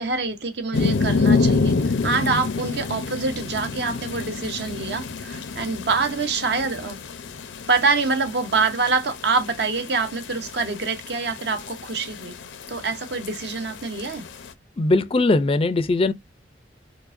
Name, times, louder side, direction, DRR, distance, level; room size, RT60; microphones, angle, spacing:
voice 1, 0.0-1.7 2.0-7.0 7.7-12.4 12.7-14.2, right 4 dB, 60° right, 0.7 m, -25 dB
sound 1, 0.7-14.5, left 4 dB, 90° left, 0.6 m, -28 dB
voice 2, 14.8-16.1, left 2 dB, 30° left, 0.4 m, -20 dB
4.6 x 2.1 x 2.5 m
head